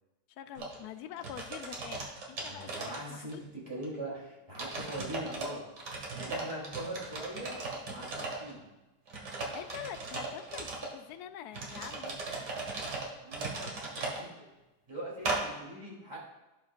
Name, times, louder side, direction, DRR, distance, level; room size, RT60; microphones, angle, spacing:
voice 1, 0.3-2.0 2.3-3.4 9.5-12.4, left 10 dB, 75° left, 9 dB, 1.1 m, -45 dB
sound 1, 0.6-0.8 1.2-3.4 3.8-3.9 4.5-5.5 5.8-8.5 9.1-10.9 11.5-14.2 15.2-15.4, right 3 dB, 80° right, 2.1 m, -37 dB
voice 2, 2.5-5.6 6.1-7.6 7.9-8.6 13.2-13.7 14.0-14.5 14.9-16.2, right 1 dB, 15° right, -6 dB, 3.1 m, -41 dB
16.0 x 5.4 x 2.5 m, 1.0 s
omnidirectional pair, 1.8 m